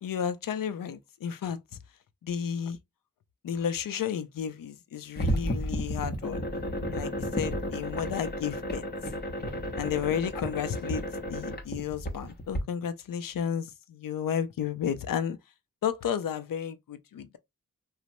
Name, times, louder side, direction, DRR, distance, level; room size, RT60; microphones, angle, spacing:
voice 1, 0.0-1.6 2.2-2.8 3.4-6.4 6.9-8.8 9.8-15.4 15.8-17.4, left 8 dB, 70° left, 0.5 m, -32 dB
sound 1, 5.2-12.6, equal, 30° left, 0.8 m, -32 dB
3.0 x 2.0 x 2.6 m
cardioid pair, 45°, 35 cm